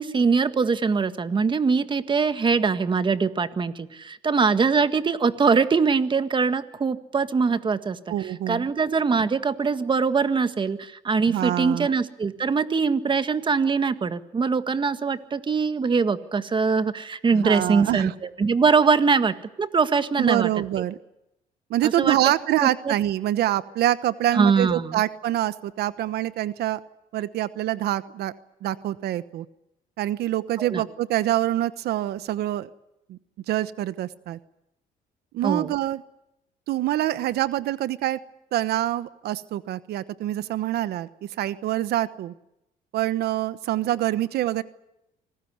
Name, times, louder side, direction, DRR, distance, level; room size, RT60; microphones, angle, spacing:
voice 1, 0.0-8.0 8.5-20.5 21.8-22.1 22.6-22.9 24.3-25.0 30.6-30.8 35.4-35.7, right 5 dB, 30° right, 11 dB, 1.7 m, -22 dB
voice 2, 8.1-8.7 11.3-11.9 17.3-18.1 20.2-21.0 21.7-26.8 27.1-28.3 28.6-29.4 30.0-32.7 33.1-33.2 33.5-34.4 35.3-36.0 36.7-38.2 38.5-41.1 41.4-42.3 42.9-44.6, right 13 dB, 70° right, 14 dB, 1.1 m, -25 dB
26.0 x 19.5 x 9.6 m, 0.85 s
cardioid pair, 110°, 17 cm